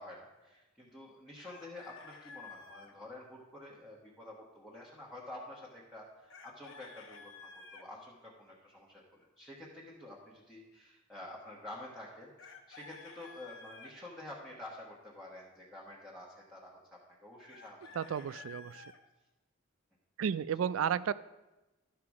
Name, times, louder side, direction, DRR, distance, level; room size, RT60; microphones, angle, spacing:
voice 1, 0.0-17.9, left 1 dB, ahead, -6 dB, 1.4 m, -49 dB
Chicken rooster, 1.4-2.9 6.3-7.9 12.4-13.9 17.5-19.0, left 4 dB, 70° left, 0.9 m, -52 dB
voice 2, 18.0-18.8 20.2-21.1, right 8 dB, 80° right, 17 dB, 0.3 m, -33 dB
12.0 x 5.8 x 4.8 m, 1.0 s
head